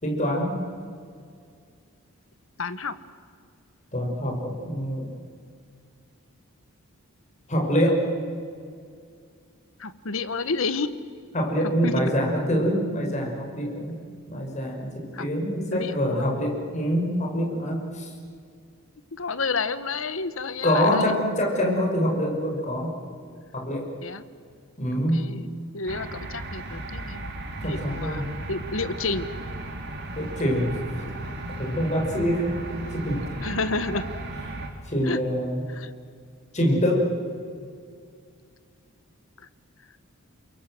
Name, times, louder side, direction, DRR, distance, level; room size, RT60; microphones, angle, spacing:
voice 1, 0.0-0.6 3.9-5.1 7.5-8.1 11.3-14.0 14.3-18.1 20.6-22.9 23.5-23.9 24.8-25.2 27.6-28.3 30.1-30.8 31.5-33.2 34.9-35.6 36.5-37.1, equal, 35° left, -1 dB, 5.8 m, -25 dB
voice 2, 2.6-2.9 9.8-10.9 11.8-12.2 15.1-15.3 15.7-16.3 19.1-21.2 24.0-24.2 24.9-27.3 27.6-29.3 33.4-34.1 35.0-35.2 35.7-35.9 39.4-39.5, left 4 dB, 65° left, 13 dB, 1.3 m, -30 dB
sound 1, 25.9-34.7, right 1 dB, 50° right, 3.4 m, -35 dB
29.0 x 22.5 x 7.7 m, 2.2 s
head